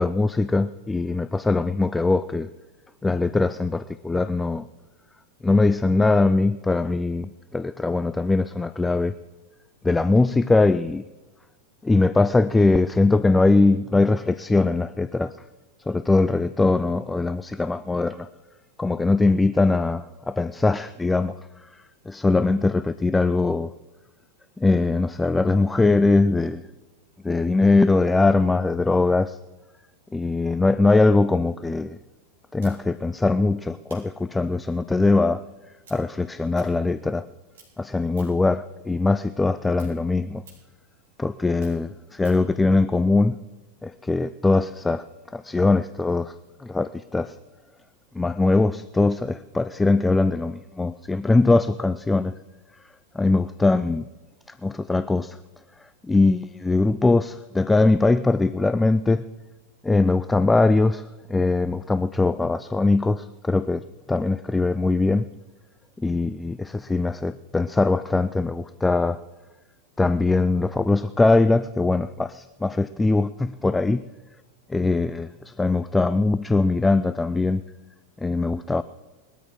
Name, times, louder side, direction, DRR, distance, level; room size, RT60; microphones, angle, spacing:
voice 1, 0.0-2.5 3.0-4.7 5.4-9.2 9.8-11.0 11.8-15.4 15.9-18.3 18.8-23.7 24.6-26.6 27.2-29.4 30.1-32.0 32.5-35.4 35.9-37.3 37.8-40.4 41.2-43.4 43.8-45.1 45.3-46.3 46.6-47.4 48.1-52.3 53.1-54.1 54.6-55.4 56.0-59.3 59.8-65.3 66.0-69.2 70.0-74.0 74.7-77.6 78.2-78.8, left 3 dB, 10° left, 0.4 m, -21 dB
sound 1, 32.6-37.3 37.5-38.5 38.9-42.5, right 4 dB, 60° right, 5.3 m, -55 dB
20.5 x 13.0 x 3.7 m
figure-of-eight pair, 90°, 0 cm